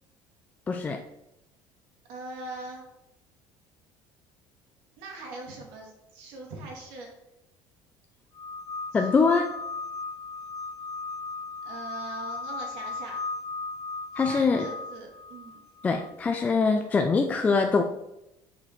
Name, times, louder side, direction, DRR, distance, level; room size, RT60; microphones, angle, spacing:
voice 1, 0.7-1.0 8.9-9.5 14.2-14.7 15.8-17.8, left 4 dB, 15° left, 4 dB, 0.3 m, -23 dB
voice 2, 2.1-2.8 5.0-7.1 8.9-9.3 11.6-13.2 14.1-15.6, right 2 dB, 80° right, 0 dB, 2.0 m, -41 dB
sound 1, 8.3-16.1, left 3 dB, 35° left, 1.3 m, -37 dB
6.6 x 4.9 x 4.4 m, 0.89 s
cardioid pair, 165°, 9 cm